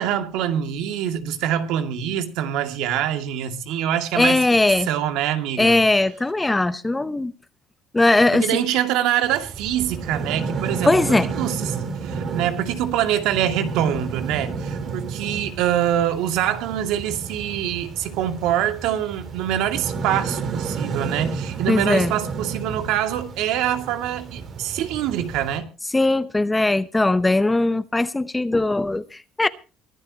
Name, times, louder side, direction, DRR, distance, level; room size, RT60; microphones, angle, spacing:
voice 1, 0.0-4.4 4.9-5.8 8.3-11.8 12.0-25.7, right 10 dB, 75° right, 2.3 m, -24 dB
voice 2, 4.2-4.9 5.6-7.3 7.9-8.4 10.8-11.3 21.7-22.1 25.9-29.5, left 2 dB, 10° left, 0.8 m, -19 dB
sound 1, 9.2-25.6, right 5 dB, 45° right, 4.0 m, -31 dB
23.5 x 12.0 x 2.9 m
cardioid pair, 125°, 0 cm